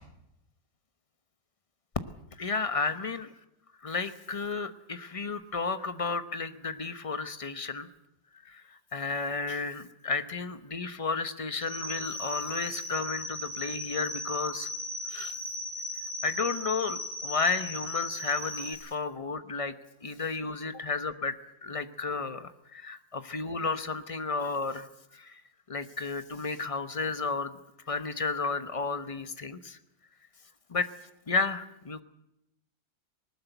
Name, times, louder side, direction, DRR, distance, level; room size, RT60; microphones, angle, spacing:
voice 1, 2.4-3.3 3.8-7.9 8.4-14.7 15.1-15.3 16.2-19.7 20.0-24.9 25.1-25.4 25.7-27.6 27.9-29.8 30.7-30.9 31.3-32.0, left 4 dB, 25° left, 11 dB, 0.8 m, -32 dB
sound 1, 11.6-18.7, left 1 dB, 30° right, 5.5 m, -37 dB
20.0 x 19.5 x 8.1 m, 0.82 s
omnidirectional pair, 2.0 m